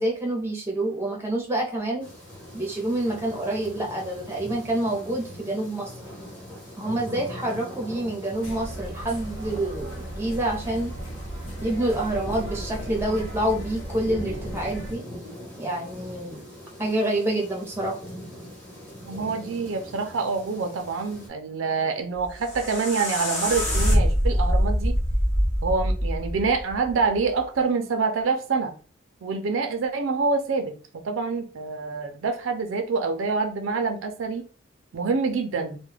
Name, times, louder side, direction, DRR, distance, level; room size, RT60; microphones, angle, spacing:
voice 1, 0.0-2.1 2.5-5.9 6.8-10.9 11.6-15.0 15.6-16.4 16.8-18.0, right 1 dB, 15° right, 0.6 m, -27 dB
sound 1, 2.0-21.3, equal, 10° left, 0.9 m, -41 dB
sound 2, 8.4-14.9, right 1 dB, 90° left, 0.7 m, -36 dB
voice 2, 19.1-25.0 25.6-28.7 29.2-34.4 34.9-35.8, right 4 dB, 75° right, 0.4 m, -26 dB
sound 3, 22.2-27.3, equal, 40° left, 0.9 m, -24 dB
2.3 x 2.1 x 3.2 m
head